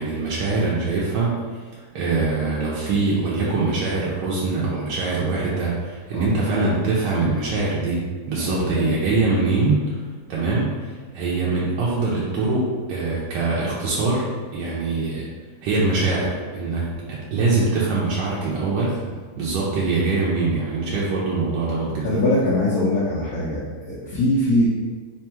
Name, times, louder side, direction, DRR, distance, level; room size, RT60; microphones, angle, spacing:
voice 1, 0.0-1.4 1.7-8.0 8.3-10.0 10.3-15.2 15.6-19.0 19.4-22.2, right 3 dB, 80° right, -6 dB, 1.3 m, -23 dB
voice 2, 8.4-8.9 22.0-24.6, left 1 dB, 65° left, -7 dB, 1.1 m, -22 dB
3.5 x 2.2 x 4.4 m, 1.5 s
omnidirectional pair, 1.9 m